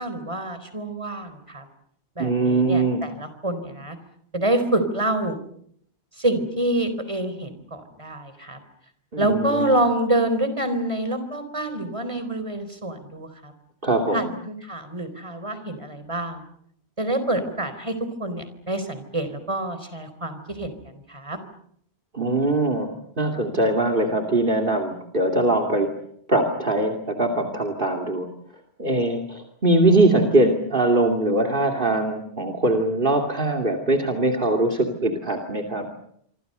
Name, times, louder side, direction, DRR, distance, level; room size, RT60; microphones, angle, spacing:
voice 1, 0.0-1.6 2.2-4.0 4.3-5.4 6.2-8.6 9.2-13.5 14.1-16.4 17.0-21.4, right 1 dB, 30° right, 10 dB, 4.1 m, -27 dB
voice 2, 2.2-3.0 9.1-9.8 13.8-14.3 22.1-22.9 23.2-25.9 26.3-28.3 28.8-35.9, right 2 dB, 50° right, 3 dB, 2.8 m, -22 dB
26.5 x 26.0 x 6.8 m, 0.67 s
omnidirectional pair, 1.1 m